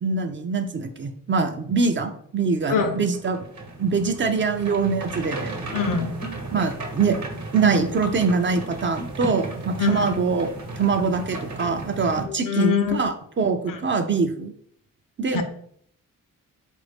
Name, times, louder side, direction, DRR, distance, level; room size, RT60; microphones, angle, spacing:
voice 1, 0.0-3.5 3.8-5.5 6.5-7.2 7.5-10.5 10.8-14.5 15.2-15.4, right 4 dB, 35° right, 7 dB, 0.4 m, -23 dB
sound 1, 2.9-12.2, right 2 dB, 60° right, 1.0 m, -34 dB
voice 2, 5.7-6.1 9.8-10.1 12.3-13.0 13.7-13.8 15.3-15.4, left 6 dB, 80° left, 7 dB, 0.6 m, -24 dB
4.0 x 2.6 x 3.4 m, 0.64 s
cardioid pair, 90°, 33 cm